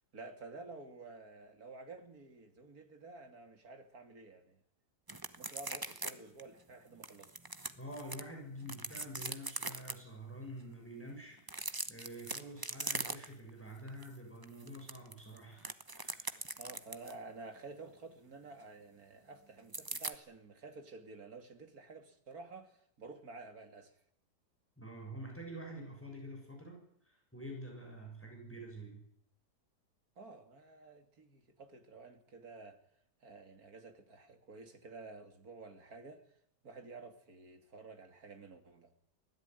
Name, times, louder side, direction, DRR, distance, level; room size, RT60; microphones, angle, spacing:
voice 1, 0.1-4.6 5.4-7.3 16.6-24.0 30.2-32.8 33.2-36.2 36.6-38.9, right 3 dB, 60° right, 6 dB, 3.1 m, -51 dB
sound 1, 5.1-6.1 6.4-6.5 7.0-8.2 8.6-9.9 11.4-13.5 13.9-14.1 14.4-17.2 19.7-20.1, right 2 dB, 15° right, 0.8 m, -41 dB
voice 2, 7.7-15.7 16.0-16.4 24.8-29.0, right 1 dB, 5° left, 1 dB, 7.0 m, -47 dB
24.5 x 16.5 x 9.4 m, 0.71 s
omnidirectional pair, 1.8 m